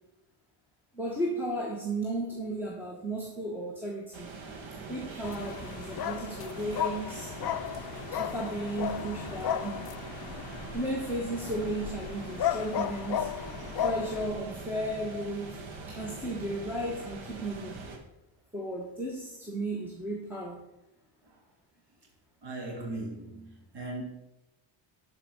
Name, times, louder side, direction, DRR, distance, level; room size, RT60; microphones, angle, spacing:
voice 1, 0.9-4.3 4.9-7.3 8.1-9.9 10.7-13.3 13.8-15.6 15.9-17.8 18.5-20.6, right 1 dB, 5° right, 1.4 m, -34 dB
sound 1, 4.1-18.0, right 3 dB, 70° right, 1.8 m, -43 dB
sound 2, 5.2-14.3, left 10 dB, 50° left, 0.5 m, -35 dB
voice 2, 22.4-24.0, right 2 dB, 55° right, 2.7 m, -38 dB
12.0 x 4.9 x 6.3 m
wide cardioid pair, 165°, 48 cm